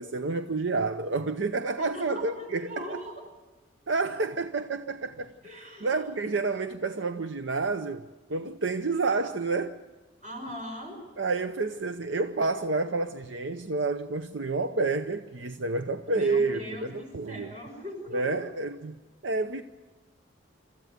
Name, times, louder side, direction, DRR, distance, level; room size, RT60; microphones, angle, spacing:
voice 1, 0.0-3.0 3.9-5.3 5.8-9.8 11.2-17.5 18.1-19.0 19.2-19.6, right 3 dB, 75° right, 0.7 m, -29 dB
voice 2, 1.8-3.1 5.4-6.1 10.2-11.0 16.0-18.4, left 1 dB, 40° right, 5.9 m, -40 dB
26.0 x 14.0 x 9.3 m
head